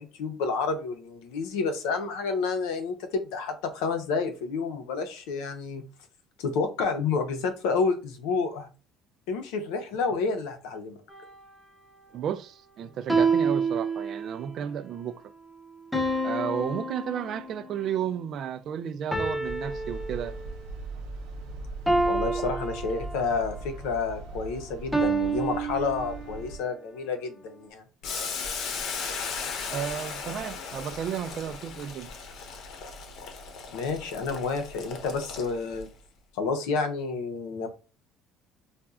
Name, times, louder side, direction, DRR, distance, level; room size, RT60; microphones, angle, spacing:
voice 1, 0.0-5.8 6.4-8.7 9.3-11.0 22.0-27.8 33.7-35.9 36.3-37.7, left 4 dB, 90° left, 0.8 m, -29 dB
sound 1, 11.1-11.6 13.1-14.6 15.9-17.7 19.1-20.7 21.9-23.5 24.9-26.5, right 3 dB, 5° left, 0.6 m, -28 dB
voice 2, 12.1-15.2 16.2-20.4 22.4-22.6 29.7-32.1, right 9 dB, 50° right, 0.3 m, -33 dB
sound 2, 19.4-26.6, right 3 dB, 90° right, 0.7 m, -39 dB
Boiling, 28.0-35.8, left 5 dB, 60° left, 0.8 m, -36 dB
4.1 x 2.3 x 2.4 m
cardioid pair, 125°, 0 cm